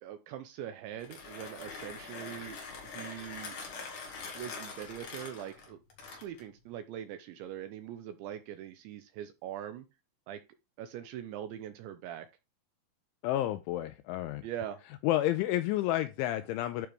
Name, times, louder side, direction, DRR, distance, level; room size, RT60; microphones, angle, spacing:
voice 1, 0.0-3.6 4.3-5.8 6.1-9.9 10.3-10.4 10.8-12.3 14.4-14.8, right 10 dB, 80° right, 2.7 m, -42 dB
Mechanisms, 0.9-6.5, left 4 dB, 50° left, 3.0 m, -44 dB
voice 2, 13.2-14.4 15.0-16.9, left 14 dB, 85° left, 2.7 m, -30 dB
11.5 x 4.7 x 3.3 m
omnidirectional pair, 5.9 m